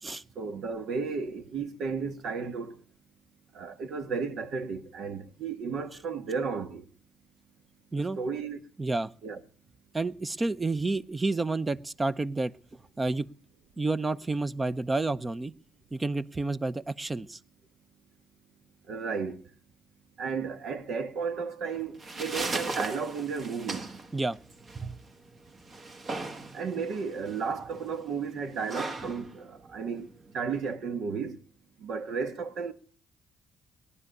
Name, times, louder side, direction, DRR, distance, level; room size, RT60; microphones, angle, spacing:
voice 1, 0.3-2.8 3.5-6.8 8.2-8.6 9.2-9.4 18.9-19.4 20.2-23.9 26.5-30.1 30.3-31.4 31.8-32.7, right 5 dB, 75° right, 1.6 m, -33 dB
voice 2, 8.8-9.1 9.9-13.3 13.8-15.5 15.9-17.4 24.1-24.4 24.7-25.0, right 3 dB, 20° right, 0.7 m, -30 dB
sound 1, 21.7-30.7, right 2 dB, 45° right, 2.0 m, -38 dB
18.0 x 11.0 x 6.6 m
cardioid pair, 90°, 0 cm